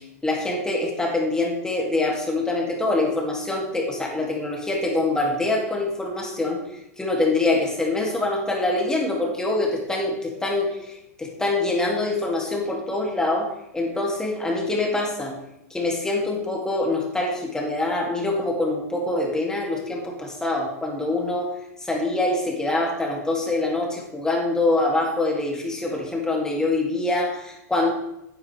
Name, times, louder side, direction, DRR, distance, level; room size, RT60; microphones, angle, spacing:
voice 1, 0.2-6.6 7.0-13.5 13.7-15.3 15.7-21.5 21.8-27.9, left 2 dB, 5° left, -1 dB, 2.6 m, -24 dB
12.5 x 9.5 x 3.4 m, 0.84 s
supercardioid pair, 135°, 9 cm